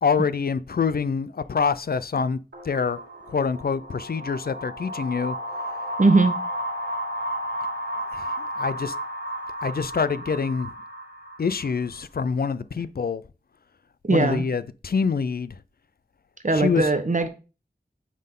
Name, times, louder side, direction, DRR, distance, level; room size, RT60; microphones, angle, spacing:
voice 1, 0.0-2.4 2.6-3.0 3.3-5.4 8.1-8.3 8.6-8.9 9.6-10.7 11.4-13.2 14.1-15.5 16.5-16.9, left 5 dB, 65° left, 0.4 m, -25 dB
sound 1, 2.5-12.0, right 1 dB, 90° right, 1.9 m, -33 dB
voice 2, 6.0-6.4 14.0-14.4 16.4-17.3, right 3 dB, 50° right, 1.1 m, -19 dB
9.5 x 3.8 x 3.7 m
wide cardioid pair, 40°, 17 cm